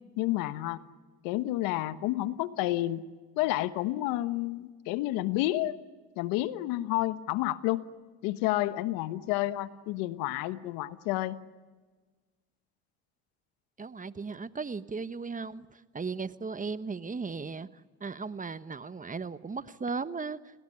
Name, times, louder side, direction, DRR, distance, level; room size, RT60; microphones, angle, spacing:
voice 1, 0.2-0.8 1.2-3.0 3.4-5.8 6.2-7.8 8.2-11.4, left 16 dB, 80° left, 14 dB, 1.3 m, -30 dB
voice 2, 13.8-17.7 18.0-20.4, right 4 dB, 25° right, 14 dB, 1.3 m, -36 dB
29.5 x 19.0 x 10.0 m, 1.4 s
hypercardioid pair, 70°, 33 cm